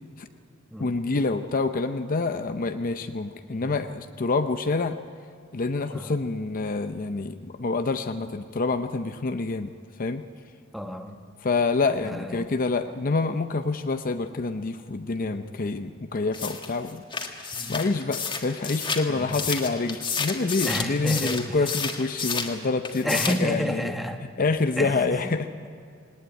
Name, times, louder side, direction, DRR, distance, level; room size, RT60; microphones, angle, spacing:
voice 1, 0.8-5.0 5.5-9.7 10.0-10.2 11.4-17.0 17.7-23.9 24.4-25.5, left 3 dB, 40° left, 8 dB, 0.6 m, -27 dB
voice 2, 10.7-11.2 12.0-12.6 15.2-15.5 17.5-17.7 19.1-19.4 20.6-21.6 23.0-24.2 24.8-25.3, equal, ahead, 5 dB, 1.2 m, -31 dB
sound 1, 16.3-22.6 22.8-23.5, left 5 dB, 25° left, 1.7 m, -31 dB
19.0 x 19.0 x 9.3 m, 2.3 s
head